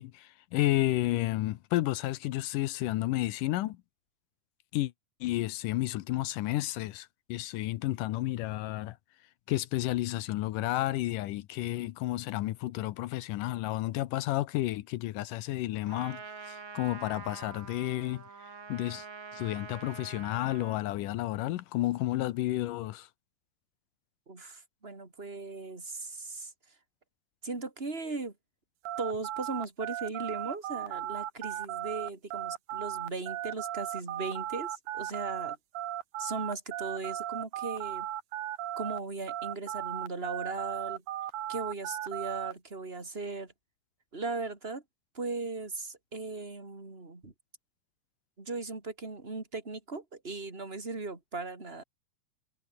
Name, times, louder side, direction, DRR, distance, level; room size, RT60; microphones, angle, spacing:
voice 1, 0.0-3.8 4.7-4.9 5.2-9.0 9.5-18.2 18.7-19.1 19.3-23.1, left 16 dB, 80° left, 2.4 m, -31 dB
Trumpet, 15.8-20.9, right 5 dB, 85° right, 6.5 m, -46 dB
voice 2, 24.3-26.5 27.4-28.3 29.0-35.6 36.2-38.1 38.8-41.0 41.5-43.5 44.1-44.8 45.1-47.3 48.4-51.8, right 3 dB, 15° right, 3.9 m, -38 dB
sound 1, 28.8-39.0 39.3-42.5, right 12 dB, 70° right, 2.6 m, -36 dB
omnidirectional pair, 3.8 m